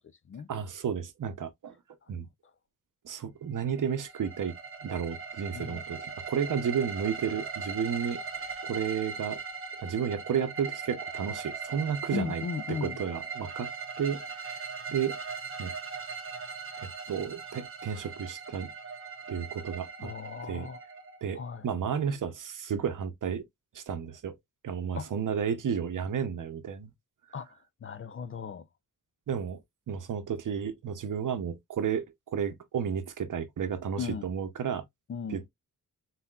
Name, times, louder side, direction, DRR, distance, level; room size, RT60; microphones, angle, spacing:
voice 1, 0.5-1.7 2.1-2.3 3.0-4.5 4.8-9.4 9.8-12.4 12.8-13.7 14.0-15.2 15.6-15.7 16.8-18.7 19.3-20.1 20.5-20.7 21.2-23.4 23.7-24.4 24.6-26.9 29.3-29.6 29.9-34.8 35.3-35.5, right 7 dB, 60° right, 0.8 m, -32 dB
sound 1, 3.7-21.5, right 5 dB, 35° right, 0.9 m, -40 dB
voice 2, 12.1-13.0 20.0-20.8 21.3-21.7 25.0-25.1 27.3-28.7 34.0-34.3 35.1-35.4, left 6 dB, 40° left, 0.4 m, -37 dB
4.1 x 4.1 x 2.3 m
wide cardioid pair, 175°, 35 cm